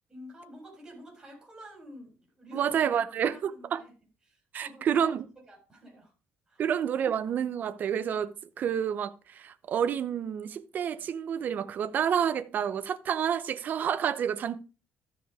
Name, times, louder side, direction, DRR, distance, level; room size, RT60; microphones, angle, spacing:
voice 1, 0.1-3.9 4.2-5.1 5.5-6.1 6.5-6.7, equal, 10° right, 4.3 m, -49 dB
voice 2, 2.5-3.8 4.5-5.2 6.6-8.3 8.6-14.6, right 8 dB, 40° right, 0.8 m, -29 dB
13.0 x 5.9 x 4.9 m
cardioid pair, 170°, 5 cm